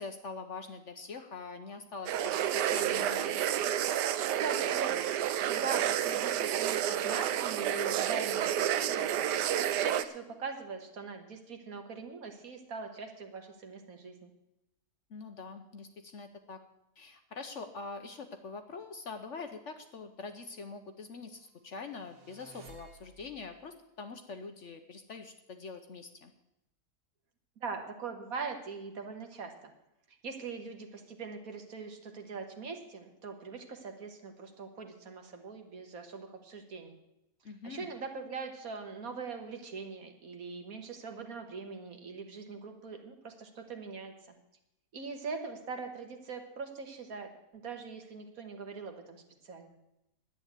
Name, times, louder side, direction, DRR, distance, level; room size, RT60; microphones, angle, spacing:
voice 1, 0.0-3.4 15.1-16.6 17.0-26.3 37.4-37.9, left 4 dB, 55° left, 7 dB, 1.0 m, -44 dB
sound 1, 2.1-10.1, right 10 dB, 90° right, 1.3 m, -30 dB
voice 2, 4.4-9.3 9.8-14.3 27.6-29.7 30.1-37.0 37.6-44.1 44.9-49.7, right 4 dB, 60° right, 5 dB, 1.8 m, -42 dB
sound 2, 21.8-23.6, right 5 dB, 40° right, 1.3 m, -55 dB
10.5 x 9.0 x 8.2 m, 0.88 s
omnidirectional pair, 1.8 m